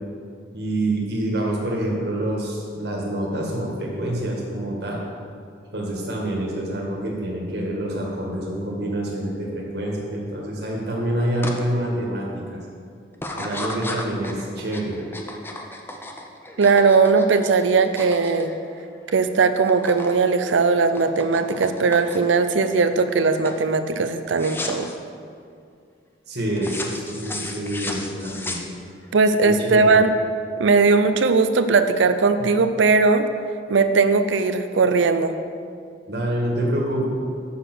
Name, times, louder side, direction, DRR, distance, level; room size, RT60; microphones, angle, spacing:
voice 1, 0.5-5.0 5.7-12.6 13.3-15.0 26.3-28.6 29.4-30.0 36.1-37.0, right 1 dB, 60° right, -2 dB, 1.8 m, -27 dB
sound 1, 11.4-11.6 12.1-12.5 13.1-19.2 19.4-20.2 20.5-22.4 22.9-23.2 23.4-23.7 24.3-25.0 26.6-29.1, left 2 dB, 10° left, 0.5 m, -34 dB
voice 2, 16.6-18.5 19.1-24.9 29.1-30.1 30.6-33.3 33.7-35.3, right 4 dB, 85° right, 10 dB, 0.5 m, -19 dB
6.9 x 6.8 x 6.2 m, 2.3 s
head